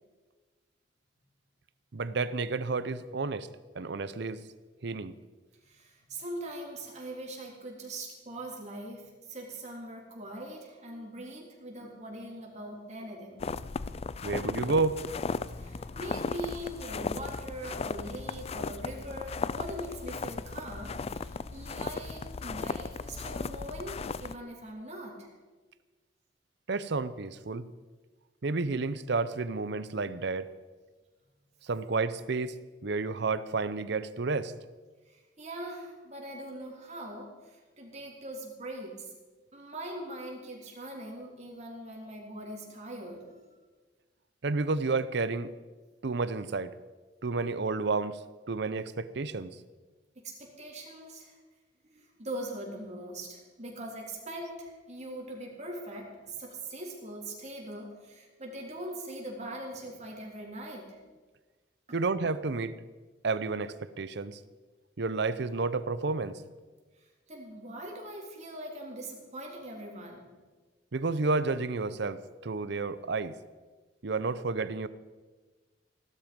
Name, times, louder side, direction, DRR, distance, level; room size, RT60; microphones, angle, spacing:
voice 1, 1.9-3.5 3.7-4.4 4.8-5.1 14.2-15.0 26.7-27.7 28.4-30.5 31.6-32.6 32.8-34.5 44.4-45.5 46.0-46.7 47.2-48.2 48.5-49.6 61.9-62.7 63.2-64.4 65.0-66.4 70.9-73.3 74.0-74.9, right 3 dB, 65° right, 15 dB, 0.7 m, -31 dB
voice 2, 5.7-13.5 15.5-25.3 35.1-39.1 39.5-43.4 50.2-51.4 51.8-61.0 61.9-62.0 67.0-70.3, right 1 dB, 40° right, -1 dB, 3.5 m, -42 dB
sound 1, 13.4-24.3, left 4 dB, 35° left, 0.4 m, -36 dB
16.5 x 12.5 x 5.3 m, 1.3 s
head